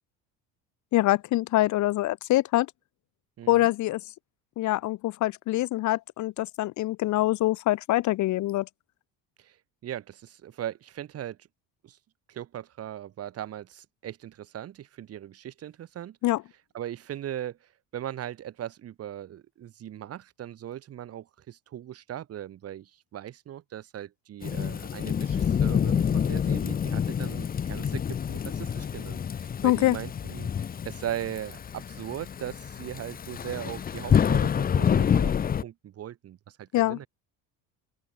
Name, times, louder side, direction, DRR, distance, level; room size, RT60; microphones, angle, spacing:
voice 1, 0.9-2.7 3.5-4.0 4.6-8.7 16.2-16.4 29.6-30.0 36.7-37.0, left 16 dB, 50° left, 0.8 m, -24 dB
voice 2, 3.4-3.7 9.4-9.6 9.8-11.4 11.8-12.0 12.3-16.2 16.7-35.3 35.6-37.1, right 11 dB, 40° right, 2.5 m, -39 dB
Thunderstorm / Rain, 24.4-35.6, left 8 dB, 25° left, 1.0 m, -27 dB
open air
cardioid pair, 170°, 38 cm